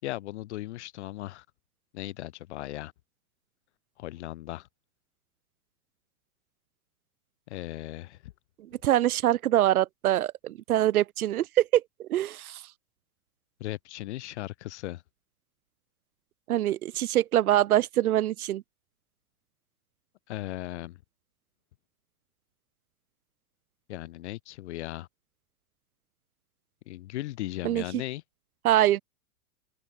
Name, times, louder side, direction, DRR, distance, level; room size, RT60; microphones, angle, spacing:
voice 1, 0.0-1.4 1.9-2.9 4.0-4.7 7.5-8.3 13.6-15.0 20.3-21.0 23.9-25.1 26.9-28.2, left 16 dB, 50° left, 6.8 m, -37 dB
voice 2, 8.8-12.6 16.5-18.6 27.6-28.0 28.6-29.0, right 13 dB, 90° right, 1.5 m, -24 dB
supercardioid pair, 175°, 42 cm